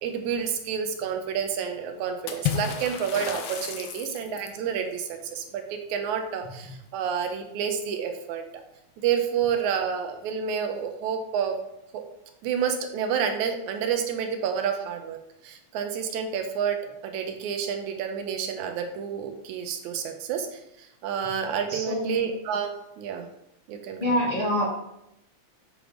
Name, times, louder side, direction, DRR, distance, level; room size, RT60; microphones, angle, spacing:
voice 1, 0.0-8.4 9.0-11.6 11.9-12.0 12.4-15.2 15.4-22.7 23.0-23.3 23.7-24.1, right 7 dB, 90° right, 5 dB, 2.1 m, -29 dB
Water / Splash splatter, 2.3-4.6, left 7 dB, 75° left, 1.4 m, -32 dB
voice 2, 21.7-22.2 24.0-24.8, equal, 40° left, -7 dB, 0.7 m, -26 dB
7.8 x 3.4 x 3.8 m, 0.82 s
omnidirectional pair, 3.3 m